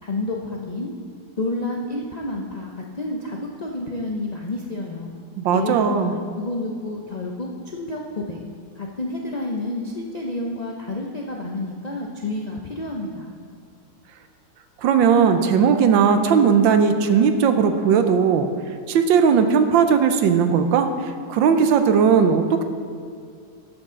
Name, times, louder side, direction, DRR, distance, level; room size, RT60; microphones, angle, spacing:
voice 1, 0.0-0.9 1.4-5.1 5.5-6.1 6.3-8.4 8.8-13.3, left 2 dB, 75° left, -1 dB, 0.3 m, -29 dB
voice 2, 5.4-6.1 14.8-18.5 18.9-20.9 21.3-22.6, right 6 dB, 85° right, 8 dB, 1.5 m, -17 dB
12.5 x 8.7 x 3.8 m, 2.3 s
omnidirectional pair, 2.0 m